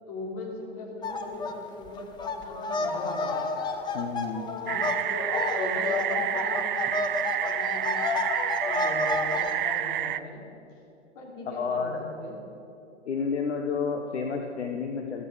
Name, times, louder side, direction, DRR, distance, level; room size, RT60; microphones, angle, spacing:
voice 1, 0.1-2.1 2.4-3.5 4.6-7.1 7.4-8.0 8.7-10.4 11.2-11.9 12.2-12.4, left 2 dB, 40° left, -1 dB, 3.6 m, -39 dB
sound 1, 1.0-1.5 1.9-9.8, left 3 dB, 10° left, 0.8 m, -31 dB
voice 2, 3.9-4.5 11.5-12.1 13.0-15.3, left 5 dB, 65° left, 3 dB, 1.2 m, -30 dB
sound 2, 4.7-10.2, right 11 dB, 45° right, 0.5 m, -29 dB
14.5 x 14.0 x 5.1 m, 2.8 s
figure-of-eight pair, 105°, 37 cm